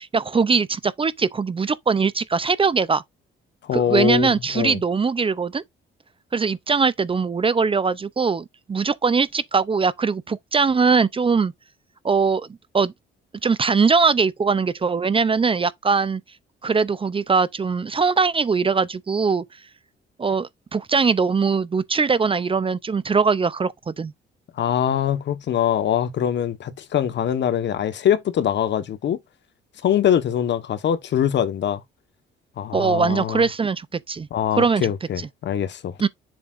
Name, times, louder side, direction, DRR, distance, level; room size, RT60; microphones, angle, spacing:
voice 1, 0.0-3.0 3.7-5.6 6.3-11.5 12.0-12.5 12.7-12.9 13.4-16.2 16.6-19.4 20.2-24.1 32.7-34.3 34.5-34.9 36.0-36.1, right 5 dB, 25° right, 0.6 m, -21 dB
voice 2, 3.6-4.8 24.6-29.2 29.8-31.8 32.6-33.4 34.3-36.0, left 9 dB, 65° left, 1.3 m, -23 dB
7.3 x 7.1 x 2.6 m
cardioid pair, 90°, 20 cm